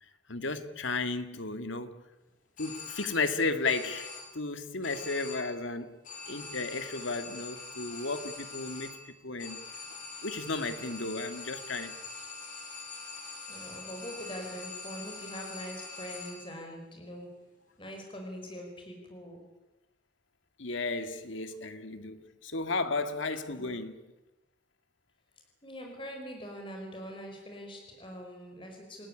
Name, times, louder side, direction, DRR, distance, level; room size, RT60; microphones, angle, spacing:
voice 1, 0.3-2.0 2.6-6.0 6.3-8.9 9.2-9.6 10.2-12.0 20.6-24.0, left 3 dB, 75° left, 1.9 m, -34 dB
sound 1, 2.6-3.4 3.7-4.5 4.8-5.7 6.0-16.6, left 3 dB, 40° left, 5.6 m, -44 dB
voice 2, 13.5-17.3 17.8-19.4 23.5-23.8 25.6-29.1, equal, 25° left, 4.8 m, -43 dB
28.0 x 16.0 x 10.0 m
head